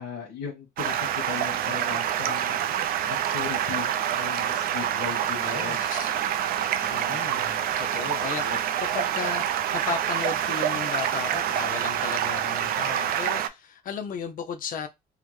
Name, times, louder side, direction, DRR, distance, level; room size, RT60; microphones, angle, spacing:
voice 1, 0.0-2.6 3.1-5.9 6.8-7.4 8.4-8.6, left 7 dB, 80° left, 1.1 m, -38 dB
Stream, 0.8-13.5, right 10 dB, 60° right, 0.4 m, -27 dB
sound 1, 3.4-10.7, right 7 dB, 90° right, 0.9 m, -43 dB
voice 2, 5.4-6.2 6.9-14.9, left 7 dB, 55° left, 0.5 m, -35 dB
3.5 x 2.1 x 3.1 m
cardioid pair, 110°, 17 cm